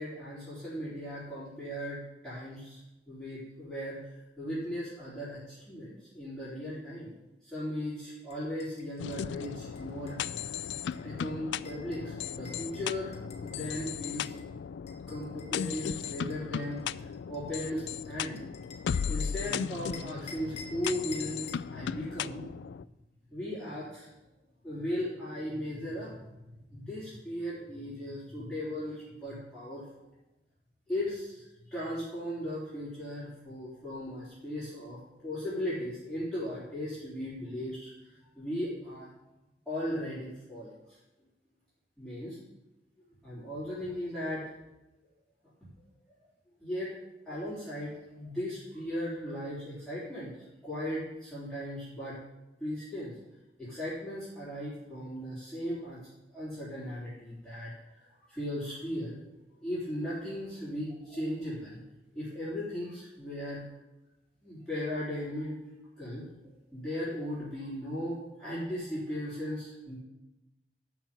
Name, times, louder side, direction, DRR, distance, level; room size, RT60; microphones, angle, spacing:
voice 1, 0.0-2.8 3.1-7.1 7.4-10.6 11.0-14.3 15.1-18.4 19.1-21.4 21.7-22.4 23.3-24.1 24.6-29.8 30.9-39.1 39.7-41.0 42.0-42.4 43.2-44.5 45.8-45.9 46.6-46.9 47.3-50.3 50.6-52.2 52.6-53.1 53.6-56.0 56.3-59.3 59.6-61.8 62.1-63.6 64.4-65.6 66.0-70.0, equal, ahead, -12 dB, 3.6 m, -37 dB
sound 1, 8.3-14.4 14.9-19.5 19.9-21.7, left 4 dB, 40° left, 1.3 m, -51 dB
sound 2, 9.0-22.8, left 7 dB, 80° left, 0.3 m, -36 dB
11.0 x 6.0 x 6.9 m, 0.97 s
head